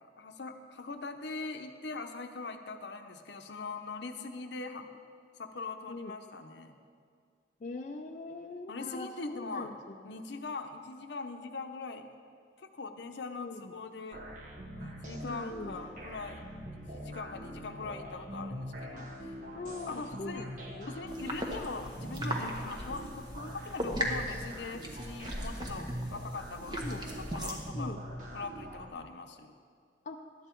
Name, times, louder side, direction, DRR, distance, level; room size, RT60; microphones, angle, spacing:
voice 1, 0.0-4.9 5.4-6.8 8.7-9.7 10.0-12.0 12.6-14.2 14.7-16.6 16.9-19.3 19.9-20.5 20.9-28.0 28.3-29.5, left 3 dB, 70° left, 7 dB, 0.7 m, -42 dB
voice 2, 7.6-9.7 13.4-13.7 15.2-15.8 19.5-20.9 26.8-27.0 27.7-28.0 30.1-30.2, left 3 dB, 40° left, 3 dB, 0.4 m, -41 dB
sound 1, 14.1-28.9, equal, 45° right, 1.3 m, -43 dB
sound 2, 21.1-27.7, equal, 25° right, 1.1 m, -38 dB
12.0 x 8.9 x 4.5 m, 2.1 s
head